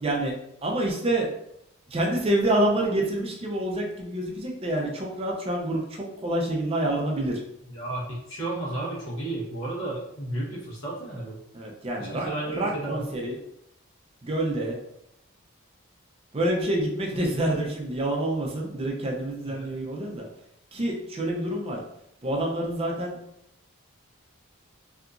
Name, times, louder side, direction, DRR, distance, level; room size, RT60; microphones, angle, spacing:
voice 1, 0.0-1.3 1.9-7.4 11.5-13.4 14.2-14.8 16.3-20.3 20.7-21.8 22.2-23.2, right 1 dB, 25° right, -1 dB, 0.4 m, -27 dB
voice 2, 7.7-11.4 12.0-13.1 19.4-19.6, right 2 dB, 70° left, -7 dB, 1.0 m, -33 dB
2.8 x 2.3 x 2.4 m, 0.78 s
head